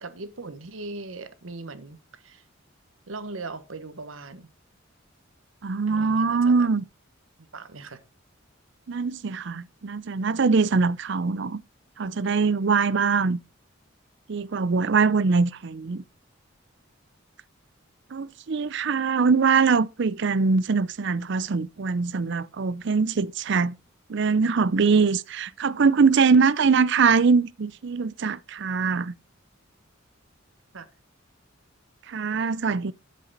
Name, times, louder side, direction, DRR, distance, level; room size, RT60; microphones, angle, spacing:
voice 1, 0.0-2.4 3.1-4.5 5.9-6.7 7.5-8.0 30.7-30.9, right 3 dB, 80° right, 1.1 m, -39 dB
voice 2, 5.6-6.8 8.9-11.6 12.0-13.4 14.3-16.0 18.1-23.7 24.1-29.1 32.1-32.9, right 5 dB, 60° right, 0.5 m, -22 dB
8.9 x 7.6 x 4.0 m
head